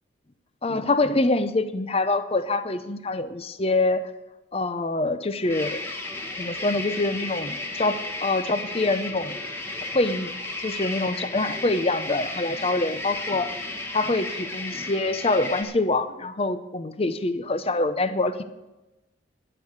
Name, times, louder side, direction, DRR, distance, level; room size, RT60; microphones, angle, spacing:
voice 1, 0.6-4.1 4.5-5.8 6.4-9.4 9.9-10.3 10.6-13.5 13.9-18.4, left 2 dB, 30° left, 12 dB, 0.6 m, -25 dB
sound 1, 5.4-15.6, left 2 dB, 10° left, 1.4 m, -34 dB
12.0 x 6.5 x 9.5 m, 1.0 s
head